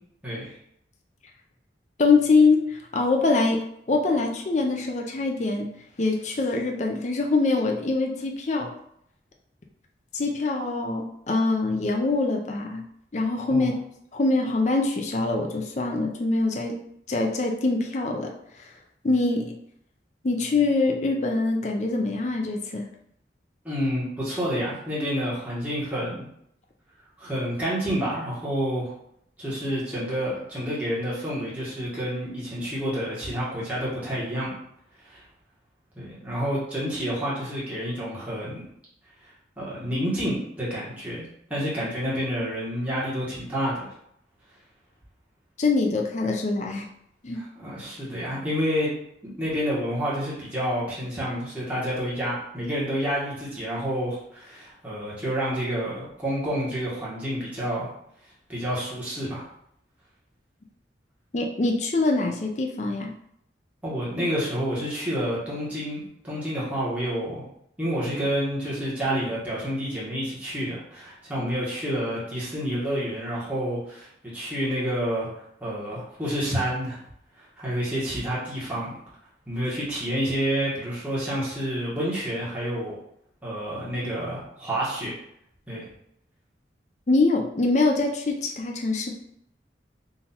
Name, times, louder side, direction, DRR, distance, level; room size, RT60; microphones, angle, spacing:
voice 1, 0.2-0.6 13.5-13.7 23.6-26.3 27.2-28.9 29.4-34.5 35.0-35.2 35.9-38.6 39.6-43.9 47.3-48.9 49.2-57.9 58.5-59.4 63.8-67.4 67.8-74.1 74.3-75.3 75.6-77.0 77.4-78.9 79.5-82.9 83.4-85.1 85.7-85.9, equal, 10° right, -9 dB, 1.4 m, -29 dB
voice 2, 2.0-3.6 3.9-5.7 6.0-8.7 10.1-12.8 13.1-13.7 14.1-16.8 17.1-18.7 19.0-19.4 20.2-22.9 45.6-46.9 47.2-47.4 61.3-63.1 71.4-71.5 87.1-89.1, left 3 dB, 40° left, 2 dB, 0.5 m, -24 dB
3.8 x 2.7 x 4.2 m, 0.73 s
head